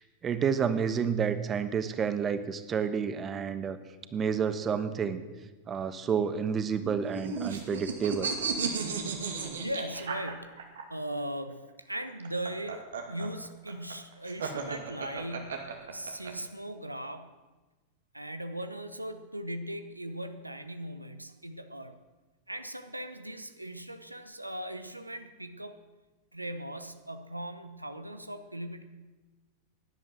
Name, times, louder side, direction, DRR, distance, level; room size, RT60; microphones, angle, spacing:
voice 1, 0.0-3.8 4.1-5.2 5.7-8.3, right 7 dB, 25° right, 11 dB, 1.1 m, -30 dB
sound 1, 6.8-10.8 12.1-16.3, right 5 dB, 65° right, 2.3 m, -34 dB
voice 2, 9.6-17.3 18.1-22.0 22.5-25.8 26.3-28.8, right 1 dB, 85° right, 10 dB, 1.0 m, -39 dB
17.0 x 11.0 x 7.6 m, 1.2 s
figure-of-eight pair, 90°, 0 cm